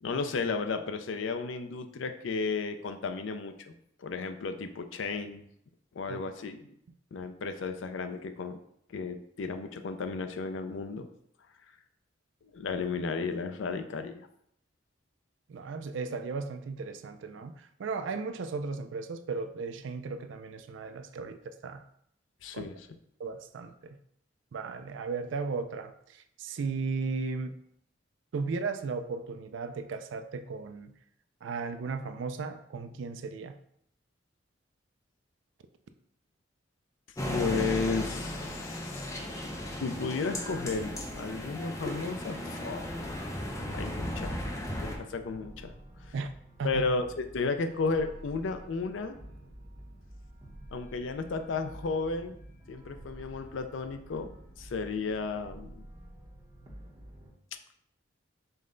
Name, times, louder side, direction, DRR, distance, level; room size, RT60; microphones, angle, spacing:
voice 1, 0.0-3.7 4.0-5.4 5.9-6.7 7.1-8.6 8.9-11.1 12.5-14.3 22.4-22.9 37.3-39.1 39.8-42.9 43.7-44.4 44.8-45.7 46.1-46.2 46.6-49.2 50.7-52.4 52.7-54.3 54.6-55.8, left 4 dB, 80° left, 8 dB, 0.4 m, -33 dB
voice 2, 15.5-21.8 22.5-22.6 23.2-24.0 24.5-27.6 28.3-30.9 31.4-33.6 46.1-46.3 46.6-46.9, right 4 dB, 70° right, 9 dB, 0.4 m, -36 dB
sound 1, 37.2-45.0, left 1 dB, 15° left, 0.6 m, -36 dB
sound 2, 44.1-57.3, right 1 dB, 25° right, 0.9 m, -49 dB
5.4 x 2.1 x 3.8 m, 0.71 s
head